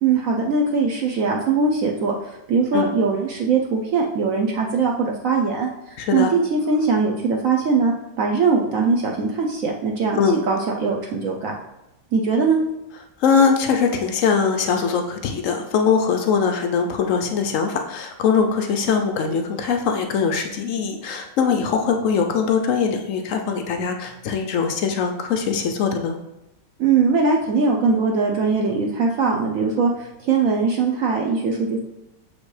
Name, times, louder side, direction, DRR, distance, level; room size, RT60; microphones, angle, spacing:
voice 1, 0.0-10.2 10.5-11.6 12.1-12.6 26.8-31.8, right 4 dB, 65° right, 0 dB, 0.8 m, -21 dB
voice 2, 6.0-6.3 10.2-10.4 13.2-26.2, left 6 dB, 80° left, 4 dB, 0.7 m, -21 dB
6.7 x 5.1 x 3.2 m, 0.89 s
omnidirectional pair, 2.0 m